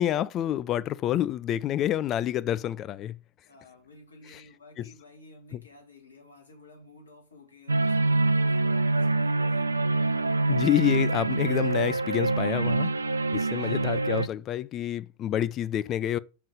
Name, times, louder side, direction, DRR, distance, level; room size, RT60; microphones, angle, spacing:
voice 1, 0.0-3.2 4.3-4.4 4.8-4.9 5.5-5.6 10.5-12.9 13.3-16.2, left 12 dB, 30° left, 0.4 m, -28 dB
voice 2, 3.5-9.9 13.6-13.8, left 3 dB, 75° left, 2.4 m, -53 dB
sound 1, 7.7-14.3, right 2 dB, 80° right, 0.4 m, -25 dB
6.8 x 5.6 x 5.2 m
figure-of-eight pair, 90°, 0 cm